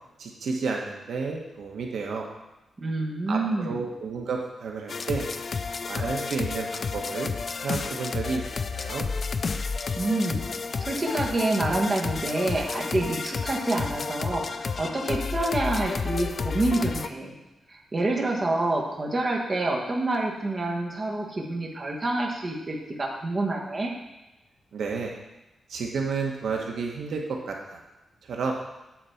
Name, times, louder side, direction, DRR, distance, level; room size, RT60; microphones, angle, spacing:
voice 1, 0.2-2.3 3.3-5.3 5.9-7.3 7.6-9.1 24.7-25.1 25.7-27.8 28.2-28.5, right 4 dB, 75° right, 0 dB, 1.1 m, -31 dB
voice 2, 2.8-3.8 10.0-10.4 10.8-17.3 17.7-23.9, right 2 dB, 30° right, -1 dB, 1.4 m, -27 dB
sound 1, 4.9-17.1, left 4 dB, 40° left, 0.4 m, -31 dB
9.1 x 4.1 x 7.0 m, 0.99 s
wide cardioid pair, 145°, 0 cm